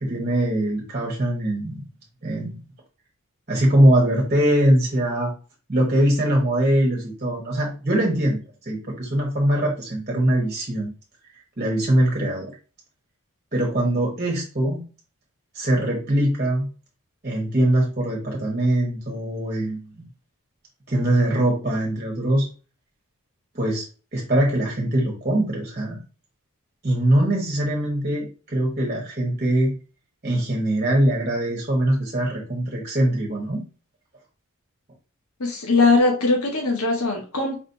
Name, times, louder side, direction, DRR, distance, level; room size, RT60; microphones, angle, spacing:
voice 1, 0.0-1.8 2.2-2.6 3.5-5.3 5.7-8.4 8.6-10.9 11.6-12.5 13.5-14.8 15.5-16.7 17.2-19.8 20.9-22.5 23.5-23.8 24.1-26.0 26.8-29.7 30.2-33.6, right 1 dB, 35° right, -1 dB, 1.2 m, -22 dB
voice 2, 35.4-37.6, left 3 dB, 75° left, 1 dB, 1.3 m, -20 dB
5.0 x 3.3 x 2.7 m, 0.36 s
head